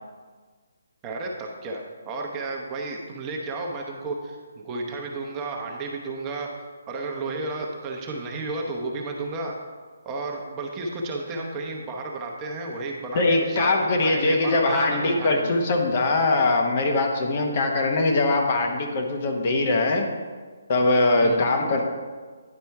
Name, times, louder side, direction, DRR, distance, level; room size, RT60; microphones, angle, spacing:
voice 1, 1.0-6.5 6.9-9.5 10.0-13.7 14.0-15.5 21.2-21.4, right 2 dB, 20° right, 0 dB, 0.9 m, -32 dB
voice 2, 13.1-20.1 20.7-21.8, left 2 dB, 45° left, 2 dB, 1.0 m, -22 dB
9.7 x 4.2 x 4.6 m, 1.5 s
hypercardioid pair, 150°, 0 cm